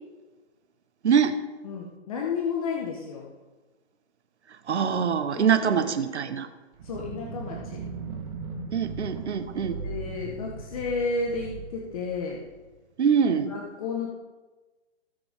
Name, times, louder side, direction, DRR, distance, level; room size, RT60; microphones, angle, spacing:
voice 1, 1.0-1.3 4.7-6.5 8.7-9.8 13.0-13.5, right 7 dB, 80° right, 9 dB, 1.3 m, -24 dB
voice 2, 1.6-3.2 5.4-5.9 6.8-7.8 9.5-12.4 13.2-14.1, left 4 dB, 30° left, -1 dB, 1.4 m, -32 dB
sound 1, 6.7-12.7, right 4 dB, 30° right, 1.4 m, -38 dB
18.0 x 7.0 x 3.7 m, 1.2 s
hypercardioid pair, 165°, 34 cm